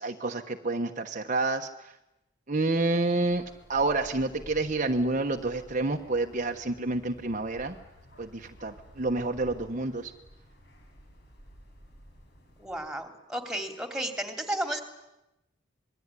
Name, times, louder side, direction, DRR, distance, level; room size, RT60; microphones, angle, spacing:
voice 1, 0.0-1.7 2.5-3.4 3.7-7.7 8.2-10.1, right 2 dB, 40° right, 4 dB, 1.2 m, -28 dB
sound 1, 3.2-12.9, equal, 55° left, 6.2 m, -52 dB
voice 2, 12.6-14.8, right 1 dB, 5° right, 5 dB, 3.1 m, -33 dB
27.0 x 21.5 x 9.9 m, 0.93 s
head